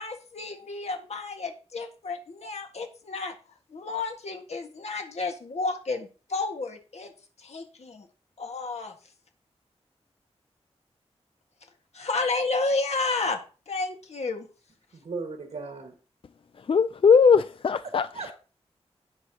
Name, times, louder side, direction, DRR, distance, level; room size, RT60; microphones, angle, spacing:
voice 1, 0.0-3.3 3.7-7.1 7.4-8.1 8.4-8.9 11.9-13.4 13.7-14.5, left 3 dB, 75° left, 1.8 m, -31 dB
voice 2, 14.9-15.9 18.1-18.3, right 4 dB, 85° right, 1.8 m, -36 dB
voice 3, 16.6-18.3, left 6 dB, 55° left, 0.4 m, -20 dB
17.0 x 6.5 x 2.9 m
wide cardioid pair, 80°, 11 cm